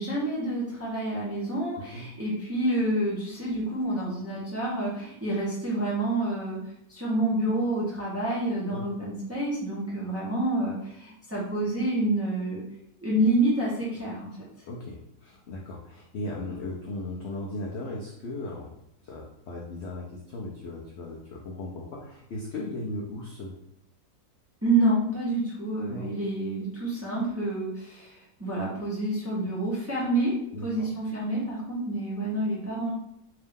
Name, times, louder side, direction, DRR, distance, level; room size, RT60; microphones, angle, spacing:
voice 1, 0.0-6.6 6.9-12.6 13.0-14.3 24.6-30.3 30.6-32.9, right 1 dB, 10° right, -7 dB, 0.7 m, -28 dB
voice 2, 1.7-2.1 8.7-8.8 14.7-18.7 19.0-23.5 25.9-26.1 30.5-30.9, left 2 dB, 65° left, -2 dB, 0.7 m, -37 dB
3.5 x 2.8 x 3.5 m, 0.77 s
omnidirectional pair, 1.8 m